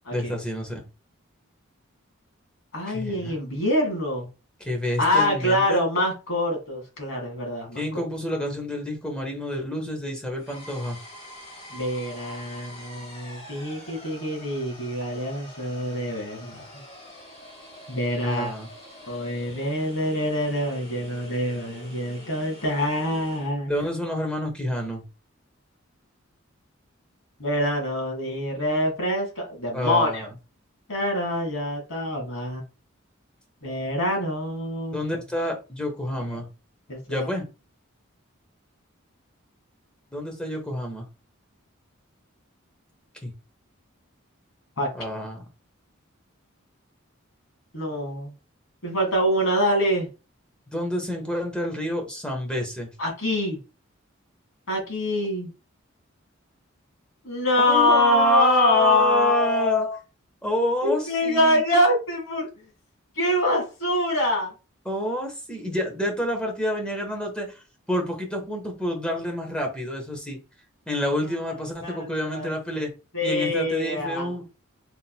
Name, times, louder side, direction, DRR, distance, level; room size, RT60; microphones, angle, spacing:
voice 1, 0.1-0.8 2.9-3.4 4.6-5.9 7.7-11.0 18.2-18.7 23.7-25.0 29.7-30.3 34.9-36.5 37.1-37.5 40.1-41.1 43.2-43.3 44.9-45.5 50.7-52.9 57.6-59.9 60.4-61.6 64.8-70.4 70.9-72.9 73.2-74.4, equal, 5° left, 0.9 m, -28 dB
voice 2, 2.7-4.3 5.0-7.8 11.7-16.6 17.9-18.5 19.1-23.7 27.4-30.3 30.9-32.6 33.6-35.0 36.3-36.4 36.9-37.3 44.8-44.9 47.7-48.3 48.8-50.1 53.0-53.6 54.7-55.5 57.2-60.0 60.8-62.5 63.2-64.5 71.8-72.5 73.1-74.3, left 1 dB, 85° left, 1.9 m, -25 dB
sound 1, 10.4-23.6, left 1 dB, 30° left, 1.6 m, -45 dB
4.1 x 3.8 x 2.2 m
head